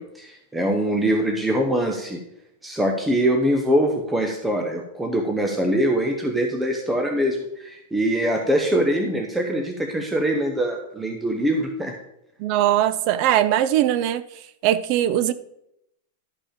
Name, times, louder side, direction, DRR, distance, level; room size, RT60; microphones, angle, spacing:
voice 1, 0.0-2.2 2.6-11.9, right 1 dB, 5° right, 2 dB, 0.9 m, -23 dB
voice 2, 12.4-14.2 14.6-15.3, right 12 dB, 45° right, 15 dB, 0.5 m, -20 dB
12.0 x 5.3 x 5.1 m, 0.81 s
supercardioid pair, 150°, 0 cm